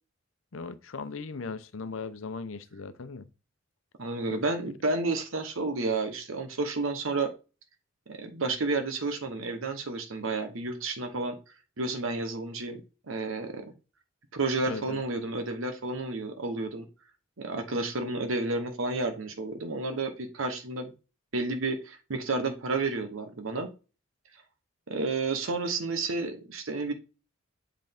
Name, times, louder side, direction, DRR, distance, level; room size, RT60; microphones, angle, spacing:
voice 1, 0.5-3.3 4.3-4.4 14.6-15.0, left 4 dB, 80° left, 0.7 m, -38 dB
voice 2, 4.0-7.3 8.1-11.4 11.8-12.8 13.1-13.7 14.3-16.8 17.4-20.9 21.3-23.7 24.9-26.9, right 3 dB, 85° right, 1.0 m, -31 dB
7.8 x 3.7 x 3.6 m
head